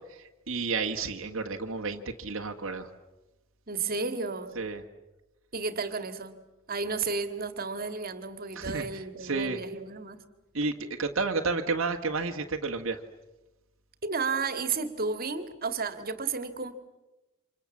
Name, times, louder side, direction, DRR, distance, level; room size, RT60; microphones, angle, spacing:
voice 1, 0.2-2.9 4.6-4.8 8.6-9.6 10.5-10.7 11.0-13.0, right 4 dB, 65° right, 3 dB, 1.7 m, -31 dB
voice 2, 3.7-4.5 5.5-6.4 6.7-10.2 14.0-16.7, right 4 dB, 45° right, 9 dB, 2.2 m, -32 dB
29.5 x 27.0 x 7.4 m, 1.1 s
head